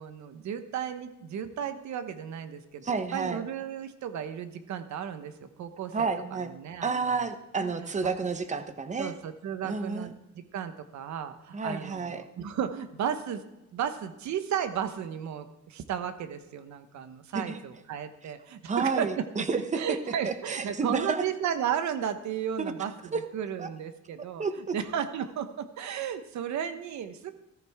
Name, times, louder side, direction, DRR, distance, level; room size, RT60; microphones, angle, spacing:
voice 1, 0.0-7.3 8.0-8.1 9.0-13.4 13.7-19.4 19.7-24.4 24.7-27.3, right 8 dB, 75° right, 10 dB, 1.2 m, -34 dB
voice 2, 2.8-3.4 5.9-6.5 6.8-9.1 9.6-10.1 11.5-12.2 17.3-17.6 18.7-19.8 20.2-21.2 22.6-22.7 23.1-23.2 23.6-23.7 24.4-24.8, right 4 dB, 25° right, 9 dB, 1.0 m, -30 dB
14.5 x 13.5 x 3.6 m, 0.93 s
cardioid pair, 140°, 29 cm